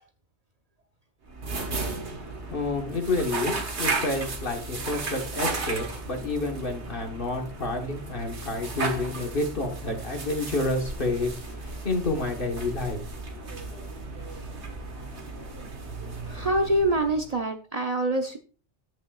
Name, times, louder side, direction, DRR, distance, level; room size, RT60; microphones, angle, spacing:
sound 1, 1.3-17.4, right 3 dB, 70° right, 1.7 m, -35 dB
voice 1, 2.2-13.0, left 2 dB, 50° left, 3 dB, 1.5 m, -29 dB
voice 2, 16.3-18.4, right 1 dB, 40° right, 4 dB, 0.8 m, -25 dB
10.0 x 8.1 x 2.3 m, 0.37 s
omnidirectional pair, 1.2 m